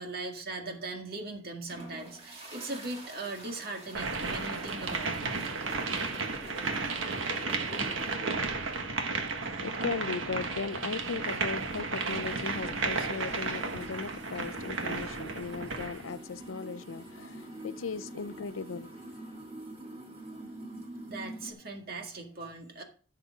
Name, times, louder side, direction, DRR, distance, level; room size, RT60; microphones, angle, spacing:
voice 1, 0.0-5.3 5.7-5.9 21.0-22.8, right 2 dB, 50° right, 2.1 m, -39 dB
sound 1, 1.7-21.5, right 1 dB, 30° right, 2.4 m, -46 dB
sound 2, 3.9-16.0, right 4 dB, 75° right, 1.5 m, -33 dB
voice 2, 7.3-19.3, left 5 dB, 85° left, 0.5 m, -38 dB
14.5 x 6.7 x 3.6 m
head